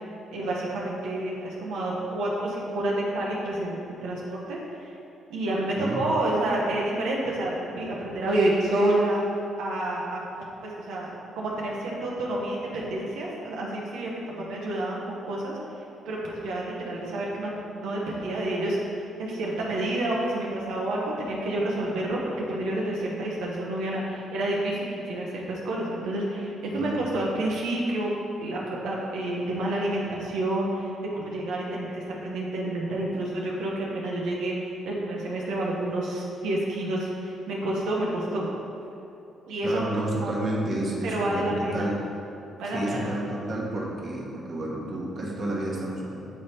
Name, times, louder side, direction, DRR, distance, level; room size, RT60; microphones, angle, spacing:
voice 1, 0.3-4.9 5.3-9.2 9.6-11.1 11.4-28.1 28.4-38.5 39.5-39.8 40.2-40.3 41.0-41.9 42.6-43.0, right 1 dB, 90° right, -4 dB, 0.9 m, -29 dB
voice 2, 39.6-42.0 42.6-46.3, right 1 dB, 45° right, -3 dB, 1.2 m, -30 dB
7.7 x 3.4 x 4.2 m, 2.7 s
cardioid pair, 90°, 0 cm